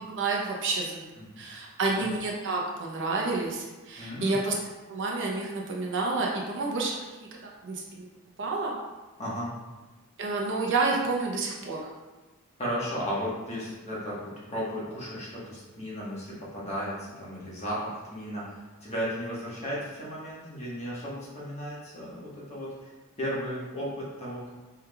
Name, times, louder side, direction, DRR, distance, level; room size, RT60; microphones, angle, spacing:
voice 1, 0.0-1.1 1.4-4.5 4.9-7.1 7.6-8.1 8.4-8.7 10.2-11.9, right 3 dB, 55° right, -1 dB, 0.7 m, -29 dB
voice 2, 1.2-1.6 1.9-2.0 4.0-4.4 9.2-9.5 12.6-14.2 14.5-22.7 23.2-24.5, equal, 30° left, -7 dB, 1.2 m, -35 dB
4.5 x 3.5 x 2.3 m, 1.2 s
head